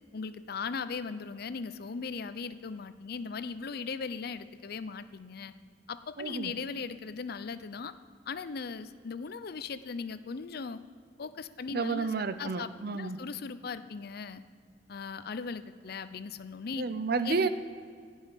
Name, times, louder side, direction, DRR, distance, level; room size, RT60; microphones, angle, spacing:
voice 1, 0.1-5.5 5.9-7.9 8.3-10.8 11.2-12.1 12.4-14.4 14.9-16.9 17.2-17.5, left 5 dB, 60° left, 13 dB, 0.5 m, -38 dB
voice 2, 6.2-6.5 11.7-13.2 16.8-17.5, right 4 dB, 60° right, 11 dB, 0.7 m, -31 dB
15.5 x 5.5 x 9.1 m, 2.2 s
head